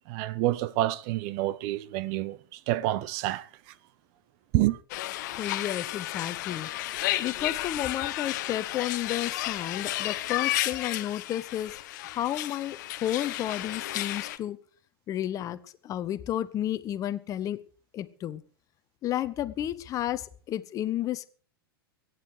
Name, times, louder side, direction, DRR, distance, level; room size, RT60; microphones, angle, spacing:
voice 1, 0.1-3.5 4.5-4.8, right 15 dB, 40° right, 0.9 m, -28 dB
sound 1, 4.9-14.4, left 15 dB, 50° left, 1.2 m, -32 dB
voice 2, 5.4-6.7 7.2-11.7 12.0-14.6 15.1-15.6 15.8-17.6 17.9-18.4 19.0-21.3, left 12 dB, 25° left, 1.2 m, -32 dB
23.5 x 9.5 x 4.9 m
figure-of-eight pair, 95°, 12 cm